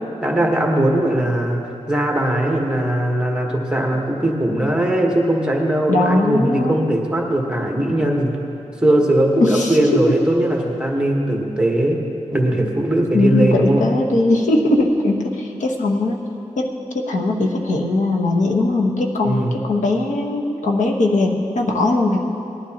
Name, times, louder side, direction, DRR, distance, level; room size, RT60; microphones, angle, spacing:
voice 1, 0.2-8.3 8.8-12.0 12.3-13.8 19.2-19.5, right 1 dB, 5° right, 0 dB, 1.3 m, -19 dB
voice 2, 5.9-6.8 9.4-10.1 13.1-16.2 16.6-16.7 16.9-22.2, left 2 dB, 90° left, 0 dB, 1.2 m, -19 dB
19.5 x 11.5 x 2.9 m, 2.8 s
wide cardioid pair, 155°, 12 cm